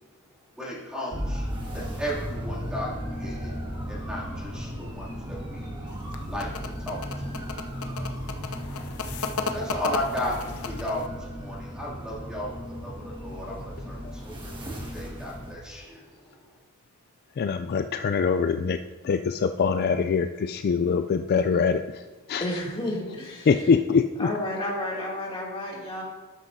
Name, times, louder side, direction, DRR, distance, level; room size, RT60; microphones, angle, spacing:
voice 1, 0.6-3.5 3.9-5.7 6.3-7.0 9.5-10.4 10.7-11.1 11.4-14.3 14.9-16.0, equal, 5° right, -6 dB, 2.6 m, -34 dB
sound 1, 1.1-15.5, equal, 20° right, 1.6 m, -35 dB
sound 2, 5.9-11.1, left 4 dB, 75° left, 0.7 m, -34 dB
voice 2, 17.4-18.8 19.0-22.4 23.5-24.3, left 5 dB, 45° left, 8 dB, 0.3 m, -24 dB
voice 3, 22.4-23.5 24.2-26.0, left 1 dB, 25° left, -4 dB, 2.6 m, -31 dB
13.0 x 9.7 x 2.7 m, 1.3 s
head